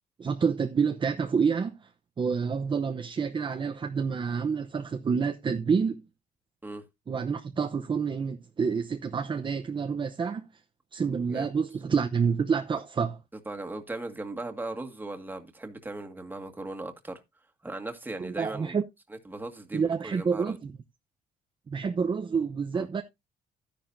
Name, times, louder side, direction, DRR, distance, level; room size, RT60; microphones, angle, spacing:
voice 1, 0.2-1.9 2.2-6.0 7.1-10.5 10.9-13.2 18.2-18.8 19.7-20.7 21.7-23.0, right 6 dB, 30° right, 0.9 m, -28 dB
voice 2, 13.5-17.2 17.6-18.8 19.1-20.6 22.7-22.9, right 2 dB, 10° right, 1.9 m, -38 dB
12.0 x 10.5 x 2.7 m
cardioid pair, 110°, 17 cm